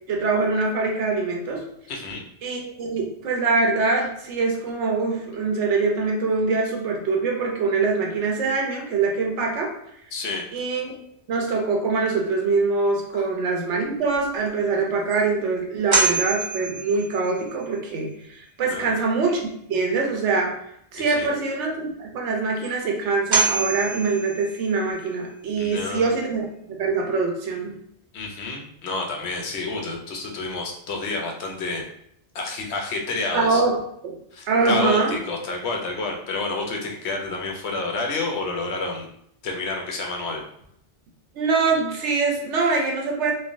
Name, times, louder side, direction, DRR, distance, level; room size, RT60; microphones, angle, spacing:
voice 1, 0.1-1.6 2.4-9.7 10.5-11.0 11.3-20.6 20.9-27.7 33.3-33.8 34.0-34.1 34.5-35.2 41.3-43.3, right 4 dB, 75° right, 0 dB, 0.9 m, -24 dB
voice 2, 1.9-2.2 10.1-10.4 13.1-13.3 18.7-19.0 21.1-21.3 25.6-26.1 28.1-31.8 32.3-33.6 34.3-39.1 39.4-40.4, left 3 dB, 70° left, 1 dB, 0.9 m, -29 dB
sound 1, 14.5-14.6 15.1-15.2 15.9-17.5 22.6-22.7 23.3-25.0, right 4 dB, 45° right, 0.7 m, -25 dB
3.1 x 2.3 x 2.5 m, 0.71 s
omnidirectional pair, 1.2 m